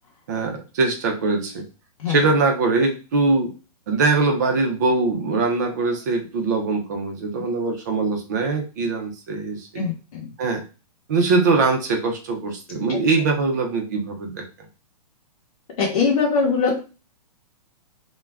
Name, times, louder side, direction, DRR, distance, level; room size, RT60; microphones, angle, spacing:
voice 1, 0.3-1.6 2.1-3.5 3.9-9.8 10.4-10.6 11.1-14.4, right 3 dB, 25° right, 3 dB, 0.4 m, -22 dB
voice 2, 9.8-10.3 12.9-13.0 15.8-16.8, left 5 dB, 60° left, -3 dB, 0.8 m, -22 dB
2.4 x 2.1 x 3.2 m, 0.32 s
hypercardioid pair, 170°, 21 cm